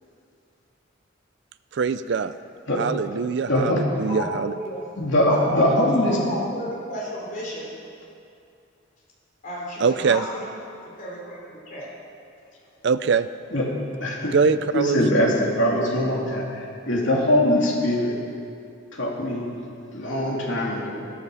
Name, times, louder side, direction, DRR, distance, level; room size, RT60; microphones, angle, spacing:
voice 1, 1.7-2.3 2.8-4.5 9.8-10.3 12.8-13.3 14.3-15.0, right 5 dB, 60° right, 12 dB, 0.4 m, -22 dB
voice 2, 3.5-3.8 5.0-6.2 13.5-13.6 14.0-14.3 14.7-18.1 18.9-19.4 19.9-20.9, left 1 dB, 70° left, -3 dB, 2.9 m, -22 dB
voice 3, 4.0-4.8 5.3-7.7 9.4-10.5 11.0-11.9, equal, 40° left, -4 dB, 4.1 m, -32 dB
13.5 x 12.5 x 6.9 m, 2.5 s
head